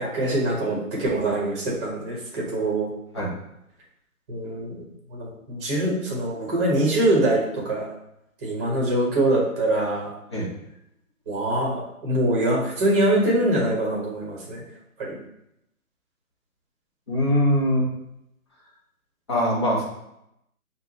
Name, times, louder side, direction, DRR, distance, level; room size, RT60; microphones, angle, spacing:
voice 1, 0.0-2.9 4.3-4.7 5.1-7.9 8.4-10.1 11.3-14.6 15.0-15.2, right 1 dB, 20° right, -3 dB, 1.0 m, -24 dB
voice 2, 17.1-17.9 19.3-19.8, equal, 20° left, -5 dB, 0.6 m, -22 dB
5.8 x 2.1 x 2.7 m, 0.81 s
figure-of-eight pair, 150°, 43 cm